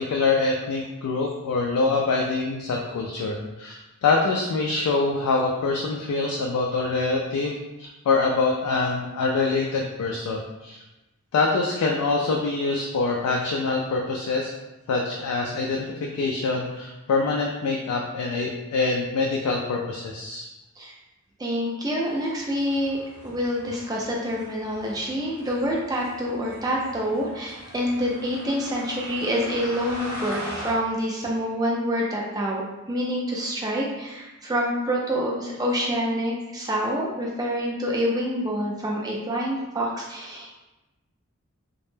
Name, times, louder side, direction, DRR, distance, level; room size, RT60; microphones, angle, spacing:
voice 1, 0.0-10.8 11.3-14.5 14.9-20.4, left 3 dB, 90° left, 0 dB, 0.3 m, -25 dB
voice 2, 21.4-23.0 23.2-32.6 32.9-40.5, equal, 15° right, -2 dB, 0.3 m, -27 dB
sound 1, 22.0-30.7, equal, 50° right, 0.9 m, -41 dB
2.1 x 2.0 x 3.1 m, 1.0 s
head